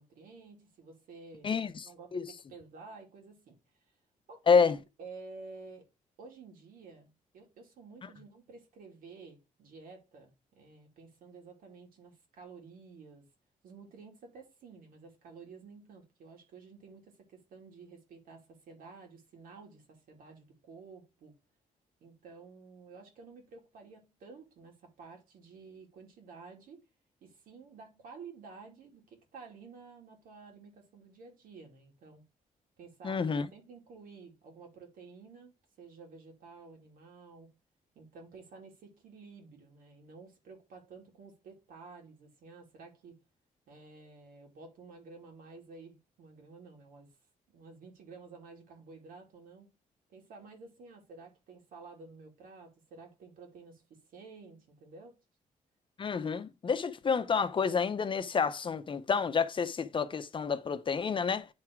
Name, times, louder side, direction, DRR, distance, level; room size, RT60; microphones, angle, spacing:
voice 1, 0.0-3.6 4.3-5.9 6.2-13.3 13.6-21.3 22.0-26.9 27.2-32.2 32.8-37.5 37.9-43.2 43.7-47.2 47.5-49.7 50.1-55.2, right 4 dB, 85° right, 2.9 m, -52 dB
voice 2, 1.4-1.9 2.1-2.2 4.5-4.8 33.0-33.5 56.0-61.5, left 5 dB, 35° left, 0.8 m, -29 dB
9.7 x 3.7 x 4.6 m
cardioid pair, 120°, 14 cm